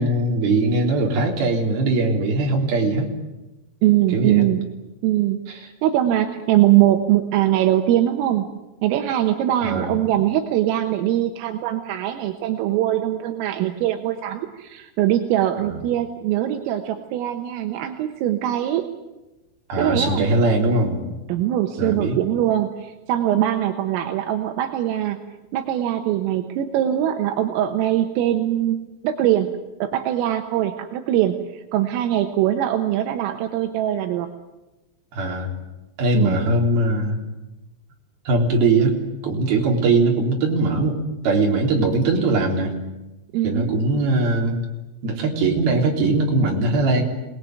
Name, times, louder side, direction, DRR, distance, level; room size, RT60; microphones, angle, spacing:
voice 1, 0.0-3.1 4.1-4.4 9.6-9.9 15.6-15.8 19.7-21.1 21.8-22.2 35.1-35.5 36.0-37.2 38.3-39.0 39.2-41.0 41.2-42.7 43.4-44.6 45.0-47.0, right 2 dB, 50° right, 0 dB, 5.2 m, -20 dB
voice 2, 3.8-4.7 5.0-5.4 5.8-8.5 8.8-18.8 19.8-20.4 21.3-25.2 25.5-29.5 29.8-34.3 36.1-36.5 43.3-43.7, right 12 dB, 80° right, 5 dB, 3.8 m, -22 dB
27.5 x 19.5 x 9.3 m, 1.1 s
omnidirectional pair, 5.9 m